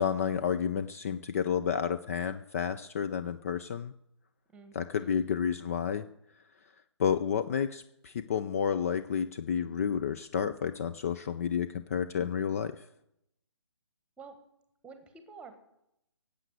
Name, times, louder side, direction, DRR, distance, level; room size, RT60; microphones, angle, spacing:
voice 1, 0.0-3.9 4.7-6.1 7.0-12.8, left 7 dB, 30° left, 11 dB, 0.5 m, -30 dB
voice 2, 4.5-5.2 14.2-14.3 14.8-15.6, right 5 dB, 5° right, 8 dB, 1.3 m, -50 dB
17.5 x 8.2 x 8.0 m, 0.81 s
figure-of-eight pair, 150°, 16 cm